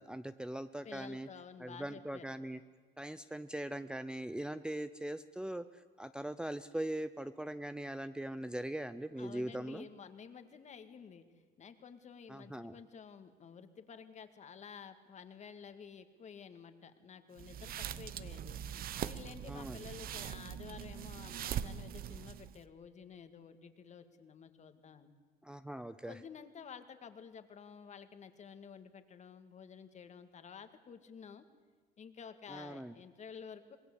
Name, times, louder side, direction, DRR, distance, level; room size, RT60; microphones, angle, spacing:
voice 1, 0.0-1.3 1.6-2.6 3.0-9.9 12.3-12.8 19.5-19.8 25.4-26.2 32.5-32.9, right 1 dB, 5° right, 10 dB, 0.6 m, -41 dB
voice 2, 0.8-2.3 9.2-11.2 11.6-18.6 19.0-25.1 26.0-31.4 32.0-33.8, left 6 dB, 45° left, 10 dB, 2.0 m, -51 dB
sound 1, 17.4-22.6, right 10 dB, 60° right, 1.0 m, -42 dB
26.0 x 20.0 x 8.4 m, 1.4 s
cardioid pair, 110°, 17 cm